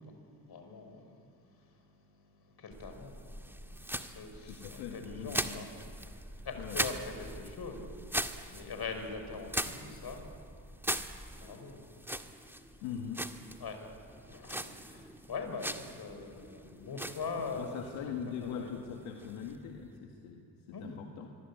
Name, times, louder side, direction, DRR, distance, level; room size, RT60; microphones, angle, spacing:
voice 1, 0.0-5.7 6.1-13.0 13.6-18.7 20.7-21.0, left 4 dB, 55° left, 6 dB, 5.5 m, -44 dB
sound 1, 2.7-20.0, right 1 dB, 5° right, 1.8 m, -41 dB
voice 2, 4.4-5.7 6.6-6.9 12.8-13.2 17.5-21.3, left 7 dB, 80° left, 2 dB, 2.0 m, -42 dB
23.5 x 23.5 x 8.7 m, 2.5 s
hypercardioid pair, 50°, 47 cm